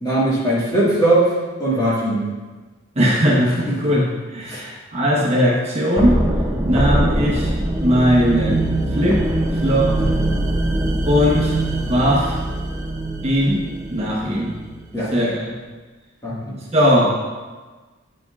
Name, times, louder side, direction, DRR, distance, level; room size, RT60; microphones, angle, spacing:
voice 1, 0.0-1.3 1.6-2.3 3.7-3.8 4.5-4.6 14.9-15.1 16.2-16.6, right 1 dB, 20° left, -8 dB, 1.5 m, -19 dB
voice 2, 3.0-4.0 4.3-6.1 6.6-7.5 7.8-8.6 8.9-9.2 9.6-9.9 11.0-11.5 11.9-12.3 13.2-13.6 13.9-14.5 15.1-15.4 16.7-17.1, equal, 35° right, -5 dB, 0.9 m, -18 dB
sound 1, 6.0-14.8, right 1 dB, 15° right, 0.4 m, -22 dB
8.0 x 5.1 x 2.4 m, 1.3 s
head